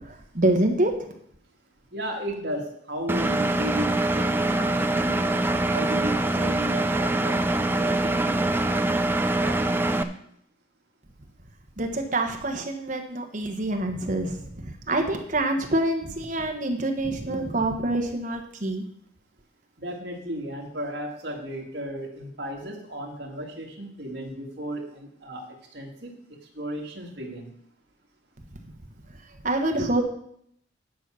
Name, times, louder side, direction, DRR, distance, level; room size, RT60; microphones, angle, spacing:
voice 1, 0.1-0.9 11.8-14.5 14.9-18.8 29.4-30.0, right 1 dB, 45° right, 4 dB, 1.3 m, -26 dB
voice 2, 1.9-5.3 5.7-7.4 7.8-8.8 9.2-9.8 19.8-25.5 25.7-27.5 29.8-29.9, right 1 dB, 60° right, -1 dB, 2.1 m, -35 dB
Engine, 3.1-10.0, right 2 dB, 10° right, 0.4 m, -24 dB
10.0 x 5.7 x 6.2 m, 0.70 s
head